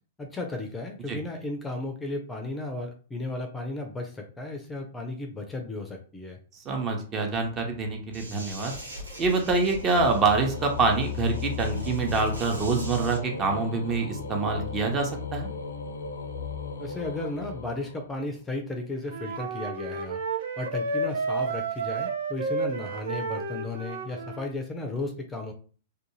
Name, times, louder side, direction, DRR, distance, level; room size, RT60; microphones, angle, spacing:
voice 1, 0.2-6.4 16.8-20.2 20.6-25.5, left 2 dB, 15° left, 3 dB, 0.5 m, -34 dB
voice 2, 6.7-8.7 9.2-15.5, right 3 dB, 30° right, 3 dB, 0.8 m, -26 dB
sound 1, 7.5-18.4, left 6 dB, 80° left, 0.5 m, -37 dB
sound 2, 8.1-13.2, right 1 dB, 85° right, 0.8 m, -42 dB
Wind instrument woodwind instrument, 19.1-24.5, right 3 dB, 65° right, 0.4 m, -31 dB
2.5 x 2.3 x 3.0 m, 0.40 s
hypercardioid pair, 110°, 0 cm